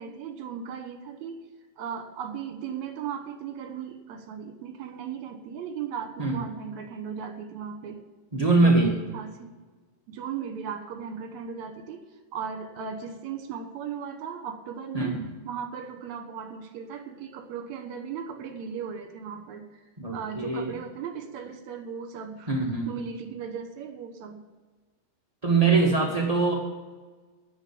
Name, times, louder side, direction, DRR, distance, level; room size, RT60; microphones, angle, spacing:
voice 1, 0.0-1.5 1.8-8.0 8.6-9.5 10.1-12.0 12.3-15.1 15.5-19.8 20.1-22.5 22.9-24.4, right 7 dB, 65° right, 6 dB, 2.3 m, -37 dB
voice 2, 8.3-8.9 14.9-15.3 20.0-20.7 22.5-22.9 25.4-26.5, right 3 dB, 90° right, -2 dB, 0.3 m, -22 dB
9.8 x 8.4 x 8.4 m, 1.3 s
omnidirectional pair, 3.9 m